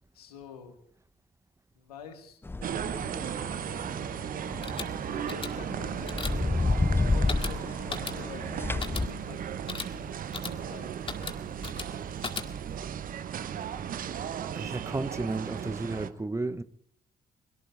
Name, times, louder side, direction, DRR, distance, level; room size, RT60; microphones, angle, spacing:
voice 1, 0.1-0.7 1.8-2.4 2.6-3.4 5.0-6.4 7.1-8.5 8.9-10.1 10.6-11.0, left 6 dB, 80° left, 2.1 m, -47 dB
sound 1, 2.4-9.1, left 2 dB, 10° left, 0.6 m, -31 dB
sound 2, 2.6-16.1, right 9 dB, 45° right, 1.0 m, -36 dB
sound 3, 4.4-12.8, left 4 dB, 25° left, 2.1 m, -40 dB
voice 2, 14.5-16.6, right 2 dB, 15° right, 1.0 m, -33 dB
23.5 x 22.5 x 2.6 m
figure-of-eight pair, 45°, 19 cm